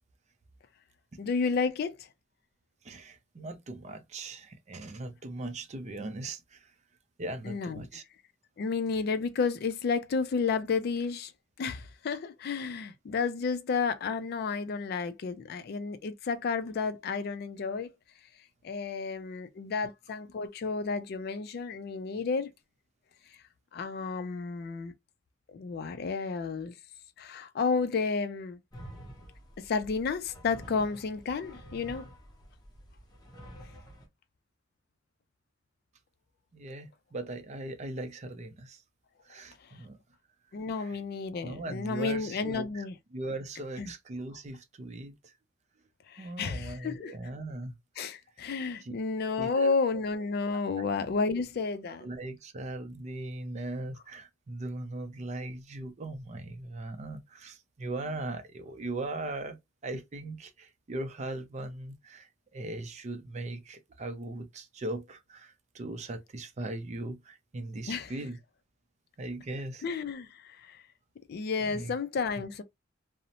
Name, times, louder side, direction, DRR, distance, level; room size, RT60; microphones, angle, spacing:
voice 1, 1.2-2.1 7.4-8.0 8.6-11.3 11.6-17.9 18.6-22.5 23.7-24.9 25.5-26.7 27.2-28.6 29.6-32.1 40.5-43.0 43.8-43.9 46.1-47.2 48.0-52.1 67.9-68.1 69.8-70.8 71.3-72.6, left 4 dB, 55° left, 0.3 m, -31 dB
voice 2, 2.8-6.7 7.2-8.0 36.5-38.8 39.3-40.0 40.8-41.0 41.4-42.8 43.1-45.2 46.2-47.7 48.8-48.9 49.4-49.7 50.7-50.9 51.3-51.4 52.0-68.4 69.2-69.8 71.6-71.9, right 2 dB, 35° right, 0.4 m, -39 dB
sound 1, 28.7-34.1, equal, 20° left, 0.7 m, -49 dB
2.6 x 2.0 x 2.8 m
head